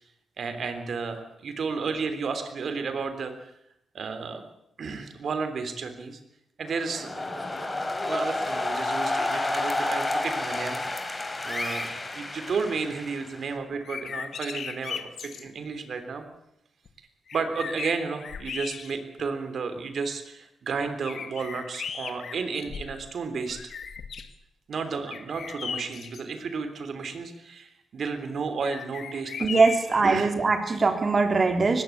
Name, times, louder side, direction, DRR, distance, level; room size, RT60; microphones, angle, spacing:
voice 1, 0.4-3.5 3.9-4.4 4.8-6.2 6.6-10.8 11.4-16.2 17.3-23.7 24.7-29.5 30.0-30.3, right 5 dB, 65° right, 9 dB, 3.3 m, -32 dB
sound 1, 6.7-13.6, left 2 dB, 25° left, 3.8 m, -30 dB
sound 2, 13.7-15.5 16.9-17.0 17.3-19.2 19.8-19.9 21.0-23.1 23.5-24.3 25.1-26.2 28.6-30.0, left 6 dB, 70° left, 1.8 m, -37 dB
voice 2, 29.4-31.8, right 3 dB, 45° right, 6 dB, 3.5 m, -22 dB
19.5 x 16.0 x 8.5 m, 0.79 s
cardioid pair, 60°, 0 cm